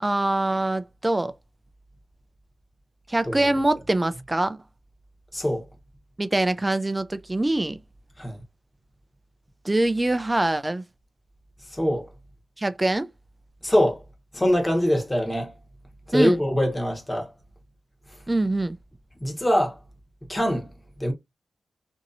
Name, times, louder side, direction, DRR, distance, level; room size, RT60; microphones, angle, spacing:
voice 1, 0.0-1.3 3.1-4.6 6.2-7.8 9.6-10.8 12.6-13.1 16.1-16.4 18.3-18.8, right 2 dB, 15° right, 0.3 m, -24 dB
voice 2, 5.3-5.6 8.2-8.4 11.7-12.1 13.6-14.0 14.3-15.5 16.1-17.3 19.2-19.8 20.3-20.7 21.0-21.1, equal, 15° left, 1.0 m, -23 dB
2.9 x 2.6 x 2.6 m
wide cardioid pair, 100°, 0 cm